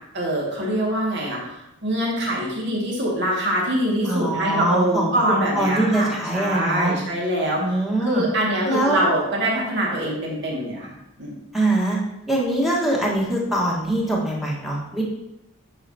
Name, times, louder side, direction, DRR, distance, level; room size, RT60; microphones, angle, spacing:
voice 1, 0.1-11.4, right 1 dB, 50° right, -3 dB, 2.1 m, -24 dB
voice 2, 4.0-5.2 5.5-6.9 7.6-8.2 8.6-9.0 11.5-12.0 12.3-15.0, right 1 dB, ahead, -4 dB, 1.5 m, -23 dB
9.6 x 5.7 x 2.9 m, 0.88 s
head